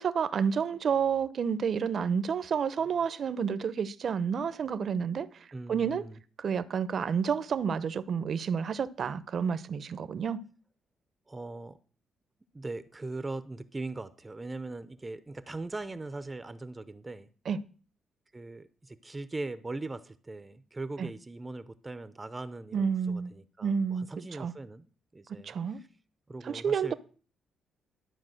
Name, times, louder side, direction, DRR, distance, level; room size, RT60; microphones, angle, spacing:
voice 1, 0.0-6.0 6.4-10.4 17.5-17.6 21.0-21.1 22.7-23.3 23.6-24.5 25.4-25.8 26.4-26.9, right 6 dB, 55° right, 0.8 m, -30 dB
voice 2, 5.5-6.2 11.3-11.8 12.5-17.3 18.3-24.9 25.1-25.9 26.3-26.9, right 2 dB, 20° right, 0.7 m, -40 dB
12.0 x 4.7 x 7.8 m
cardioid pair, 90°, 0 cm